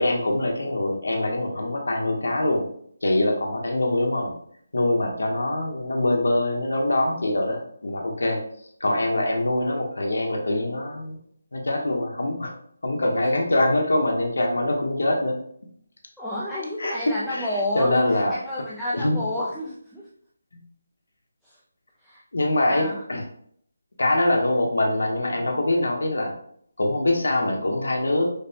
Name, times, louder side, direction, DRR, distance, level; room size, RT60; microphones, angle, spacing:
voice 1, 0.0-2.6 3.0-4.3 4.7-8.4 8.8-11.2 11.5-12.5 12.8-15.4 16.8-16.9 17.3-17.5 17.7-18.3 19.0-19.2 22.3-23.2 24.0-26.3 26.8-28.3, left 1 dB, 90° left, 1 dB, 0.9 m, -23 dB
voice 2, 16.2-20.1 21.4-21.5 22.0-22.2 22.7-23.0, left 1 dB, ahead, -10 dB, 0.3 m, -30 dB
5.0 x 2.1 x 2.8 m, 0.65 s
figure-of-eight pair, 175°, 0 cm